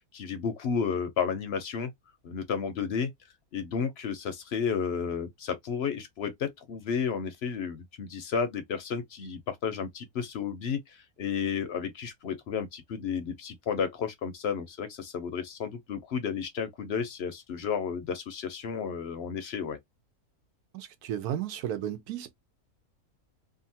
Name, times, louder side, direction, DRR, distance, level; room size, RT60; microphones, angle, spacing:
voice 1, 0.1-1.9 2.2-3.1 3.5-19.8, left 6 dB, 60° left, 0.6 m, -32 dB
voice 2, 20.7-22.3, right 10 dB, 85° right, 1.2 m, -34 dB
2.8 x 2.5 x 2.7 m
omnidirectional pair, 1.6 m